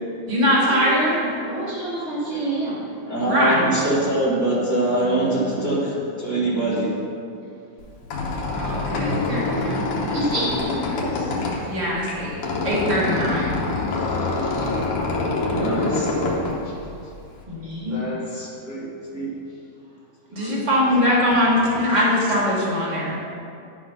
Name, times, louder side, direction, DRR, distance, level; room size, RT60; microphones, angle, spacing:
voice 1, 0.3-1.3 3.2-3.7 8.5-9.9 11.7-13.6 17.5-18.0 20.3-23.1, equal, 20° right, -7 dB, 1.2 m, -22 dB
voice 2, 1.4-2.8 5.3-5.4 8.3-9.2 10.1-11.3 14.5-14.8 15.9-16.0 17.6-18.2, right 1 dB, 65° right, -8 dB, 0.7 m, -30 dB
voice 3, 3.1-5.9 6.2-6.9 14.5-14.6 15.5-16.1 16.6-16.7 17.9-19.3 20.3-20.6, right 1 dB, 45° right, -9 dB, 1.2 m, -24 dB
Squeak, 7.8-17.4, left 3 dB, 65° left, 1.4 m, -26 dB
11.0 x 4.6 x 5.7 m, 2.5 s
omnidirectional pair, 3.9 m